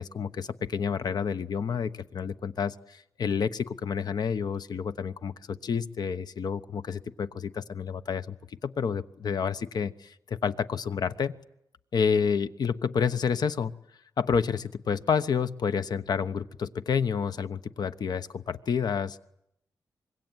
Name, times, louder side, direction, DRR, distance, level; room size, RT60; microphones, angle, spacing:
voice 1, 0.0-11.3 11.9-13.7 14.2-19.2, left 6 dB, 65° left, 12 dB, 1.1 m, -29 dB
25.5 x 22.5 x 9.1 m, 0.79 s
wide cardioid pair, 125°, 7 cm